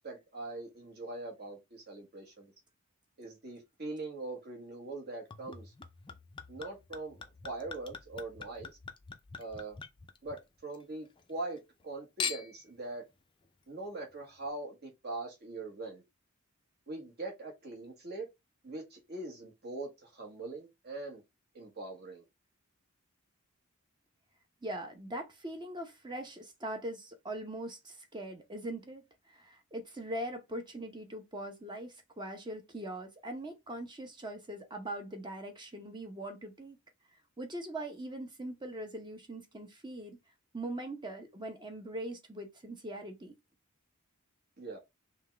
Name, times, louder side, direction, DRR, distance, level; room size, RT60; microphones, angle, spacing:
voice 1, 0.0-2.5 3.2-5.7 6.5-7.2 7.4-8.7 9.4-9.8 10.2-13.0 13.7-16.0 16.9-18.3 18.6-21.2 21.5-22.2 44.6-44.8, right 2 dB, 45° right, 1.5 m, -42 dB
Chink clink / Liquid, 5.3-10.8 11.2-11.8 12.2-12.7 13.4-13.5, left 6 dB, 20° left, 0.4 m, -43 dB
voice 2, 24.6-36.8 37.4-40.2 40.5-43.3, right 1 dB, 20° right, 0.8 m, -41 dB
5.4 x 2.3 x 3.3 m
head